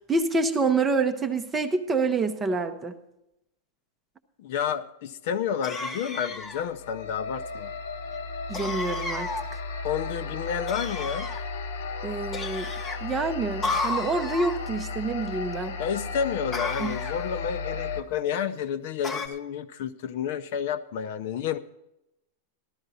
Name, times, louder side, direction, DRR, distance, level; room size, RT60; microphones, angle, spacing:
voice 1, 0.1-2.9 8.5-9.6 12.0-12.7 13.0-15.8 16.8-17.0, right 3 dB, 10° right, 7 dB, 0.7 m, -27 dB
voice 2, 4.4-7.7 9.8-11.3 15.8-21.6, left 8 dB, 45° left, 11 dB, 0.7 m, -30 dB
sound 1, 5.6-6.7 8.5-9.5 10.7-11.4 12.3-13.0 13.6-14.6 16.5-17.3 19.0-19.3, left 3 dB, 15° left, 0.9 m, -32 dB
sound 2, 6.5-18.0, left 4 dB, 70° left, 1.0 m, -35 dB
14.5 x 12.5 x 4.1 m, 0.86 s
supercardioid pair, 180°, 0 cm